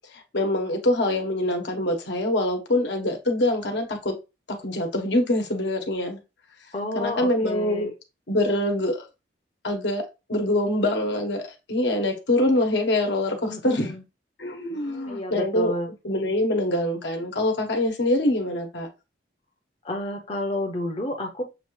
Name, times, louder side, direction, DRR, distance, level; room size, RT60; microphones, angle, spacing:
voice 1, 0.1-4.1 4.5-6.2 6.9-7.9 8.3-9.0 9.6-10.0 10.3-13.9 14.4-15.7 16.0-18.9, left 1 dB, 75° left, 1.2 m, -24 dB
voice 2, 6.7-7.9 13.5-14.0 14.7-15.9 19.8-21.4, left 1 dB, 30° left, 0.7 m, -31 dB
6.8 x 2.5 x 3.2 m
head